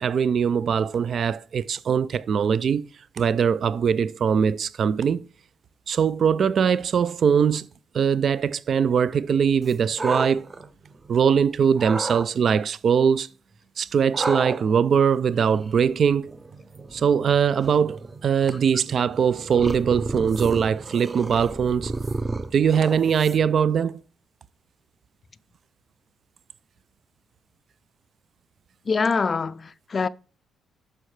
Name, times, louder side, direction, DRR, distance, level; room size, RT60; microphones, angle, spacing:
voice 1, 0.0-2.8 3.2-5.3 5.9-7.7 7.9-10.4 11.1-13.3 13.8-16.3 16.9-21.9 22.5-24.0, right 7 dB, 55° right, 0.4 m, -21 dB
sound 1, 9.6-11.3 11.8-12.3 14.1-23.6, right 3 dB, 25° right, 0.7 m, -33 dB
voice 2, 28.9-30.1, left 5 dB, 35° left, 0.4 m, -24 dB
12.0 x 5.4 x 3.2 m
cardioid pair, 90°, 0 cm